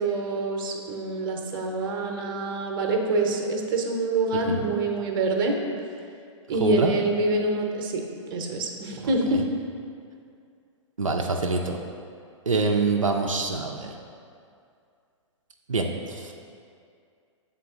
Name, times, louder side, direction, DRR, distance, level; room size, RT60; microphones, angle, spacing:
voice 1, 0.0-5.6 6.5-8.0 8.3-9.4, right 2 dB, 45° right, 2 dB, 0.8 m, -26 dB
voice 2, 6.6-6.9 9.3-9.4 11.0-11.8 12.5-13.9 15.7-16.3, right 3 dB, 90° right, 1 dB, 0.4 m, -25 dB
7.5 x 3.7 x 3.6 m, 2.4 s
figure-of-eight pair, 115°, 16 cm